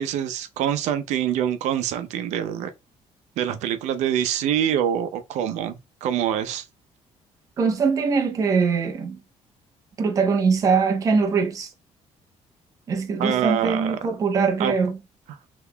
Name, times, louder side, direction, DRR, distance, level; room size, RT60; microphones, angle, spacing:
voice 1, 0.0-2.7 3.4-6.6 13.2-14.0 14.6-14.7, right 9 dB, 85° right, 0.5 m, -25 dB
voice 2, 7.6-9.2 10.0-11.7 12.9-15.0, right 5 dB, 30° right, 0.5 m, -22 dB
3.6 x 2.9 x 2.2 m
cardioid pair, 170°, 12 cm